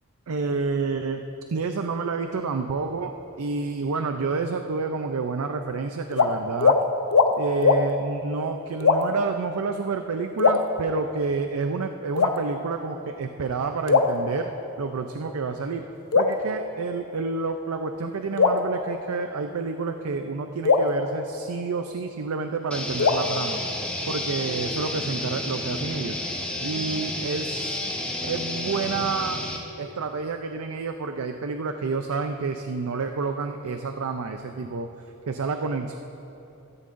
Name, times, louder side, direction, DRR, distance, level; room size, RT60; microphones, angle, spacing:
voice 1, 0.3-1.2 1.5-6.8 7.4-14.5 14.8-15.9 16.1-23.6 24.1-27.8 28.2-29.4 29.8-34.9 35.3-36.0, right 4 dB, 80° right, 6 dB, 0.5 m, -29 dB
sound 1, 6.1-6.3 6.6-6.8 7.1-7.3 7.6-7.8 8.8-9.3 10.4-11.2 12.2-12.9 13.9-14.9 16.1-17.3 18.4-19.6 20.7-22.1 23.0-24.2, left 4 dB, 75° left, 0.6 m, -23 dB
sound 2, 22.7-29.6, left 1 dB, 5° left, 1.0 m, -31 dB
16.0 x 13.5 x 2.6 m, 3.0 s
head